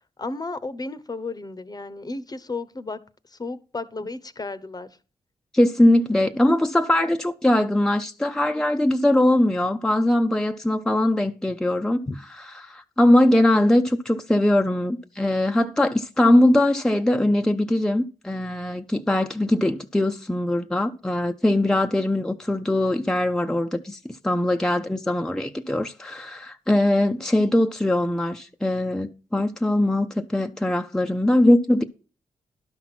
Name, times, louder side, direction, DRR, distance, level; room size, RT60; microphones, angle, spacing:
voice 1, 0.2-3.0 3.3-4.9 12.1-12.2, left 3 dB, 30° left, 0.9 m, -33 dB
voice 2, 5.5-12.1 12.6-31.8, left 1 dB, 5° left, 0.7 m, -21 dB
11.5 x 5.9 x 6.1 m
cardioid pair, 80°, 13 cm